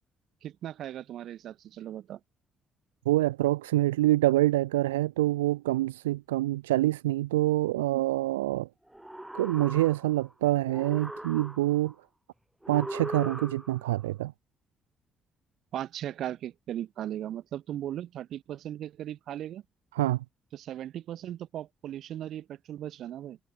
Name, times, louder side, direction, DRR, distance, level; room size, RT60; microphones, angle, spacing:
voice 1, 0.4-2.2 15.7-19.6 20.5-23.4, right 11 dB, 65° right, 3.1 m, -37 dB
voice 2, 3.1-8.7 9.3-11.9 12.7-14.3 19.9-20.2, right 16 dB, 85° right, 0.7 m, -26 dB
sound 1, 8.9-10.3 10.7-11.9 12.6-13.9, right 1 dB, 10° right, 4.0 m, -39 dB
figure-of-eight pair, 40°, 0 cm